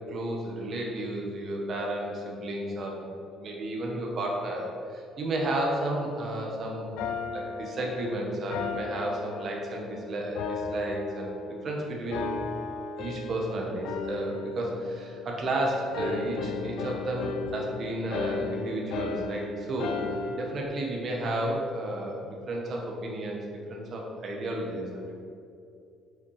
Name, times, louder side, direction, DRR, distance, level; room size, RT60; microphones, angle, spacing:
voice 1, 0.1-3.1 3.4-7.0 7.3-12.4 13.0-20.0 20.3-23.4 23.7-25.2, right 1 dB, 35° right, -1 dB, 1.3 m, -32 dB
sound 1, 7.0-9.9 10.4-11.7 12.1-13.5 13.8-15.6 15.9-20.7, left 4 dB, 80° left, 0.7 m, -35 dB
7.7 x 6.0 x 4.9 m, 2.5 s
cardioid pair, 180°, 0 cm